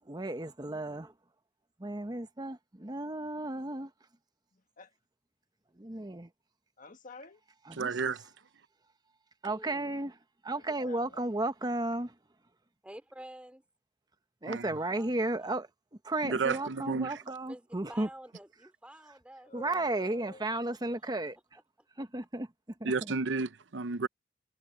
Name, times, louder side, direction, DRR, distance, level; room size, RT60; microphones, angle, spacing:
voice 1, 0.1-1.1 1.8-3.9 5.8-6.3 7.7-8.1 9.4-10.1 10.4-12.1 14.4-15.7 16.0-18.1 19.5-21.4 22.0-22.5 22.8-23.1, right 2 dB, 20° right, 1.1 m, -34 dB
voice 2, 4.5-4.9 6.8-7.4 10.5-11.3 19.4-20.6, left 2 dB, 45° left, 1.7 m, -50 dB
voice 3, 7.8-8.2 14.5-14.7 16.2-17.2 22.8-24.1, right 4 dB, 75° right, 0.7 m, -32 dB
voice 4, 9.5-10.0 12.8-13.6 14.9-15.6 17.5-19.5 20.9-21.0 22.0-22.1, right 1 dB, 5° right, 3.5 m, -50 dB
head